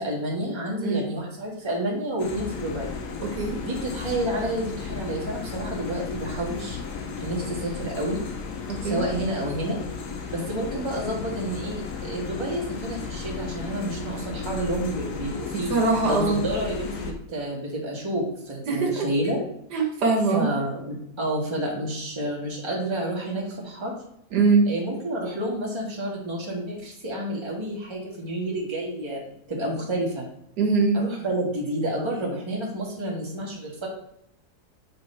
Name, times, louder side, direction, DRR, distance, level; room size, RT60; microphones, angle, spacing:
voice 1, 0.0-2.9 3.6-6.8 7.2-8.2 8.8-9.8 10.3-15.7 16.0-19.4 20.3-23.9 24.6-30.3 30.9-33.9, right 1 dB, 15° right, -4 dB, 1.6 m, -29 dB
sound 1, 2.2-17.1, left 5 dB, 80° left, 1.4 m, -35 dB
voice 2, 15.7-16.4 18.7-19.0 19.7-20.5 24.3-24.7 30.6-31.0, right 4 dB, 90° right, 1 dB, 1.8 m, -22 dB
7.8 x 3.8 x 4.4 m, 0.75 s
omnidirectional pair, 1.7 m